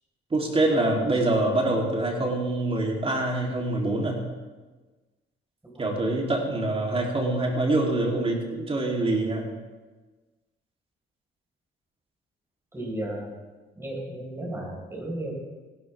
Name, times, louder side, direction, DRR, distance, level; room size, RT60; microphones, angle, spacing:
voice 1, 0.3-4.2 5.8-9.5, right 2 dB, 30° right, -1 dB, 3.3 m, -25 dB
voice 2, 12.7-13.3 13.8-15.3, right 1 dB, 10° right, -2 dB, 4.9 m, -34 dB
16.5 x 12.5 x 3.6 m, 1.3 s
cardioid pair, 90°, 20 cm